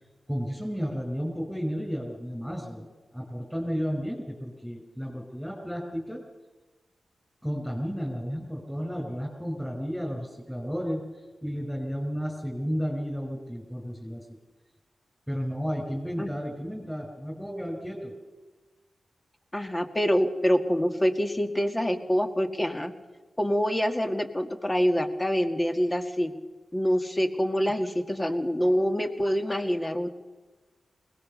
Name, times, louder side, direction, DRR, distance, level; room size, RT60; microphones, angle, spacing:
voice 1, 0.3-6.2 7.4-11.0 11.4-14.2 15.3-18.2, equal, ahead, -3 dB, 5.1 m, -32 dB
voice 2, 19.5-22.9 23.4-26.3 26.7-30.1, equal, 20° left, 5 dB, 2.1 m, -26 dB
21.0 x 18.5 x 6.8 m, 1.2 s
cardioid pair, 55°, 0 cm